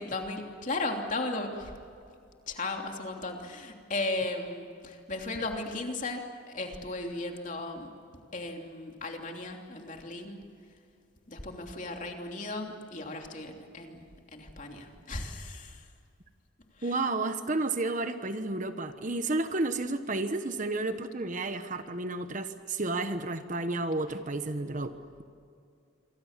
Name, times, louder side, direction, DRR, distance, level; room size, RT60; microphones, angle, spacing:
voice 1, 0.0-1.7 2.5-7.9 8.3-10.4 11.3-15.9 16.8-17.0, left 2 dB, 40° left, 2 dB, 3.1 m, -36 dB
voice 2, 16.8-24.9, right 2 dB, 40° right, 9 dB, 1.2 m, -31 dB
28.0 x 24.5 x 7.5 m, 2.4 s
head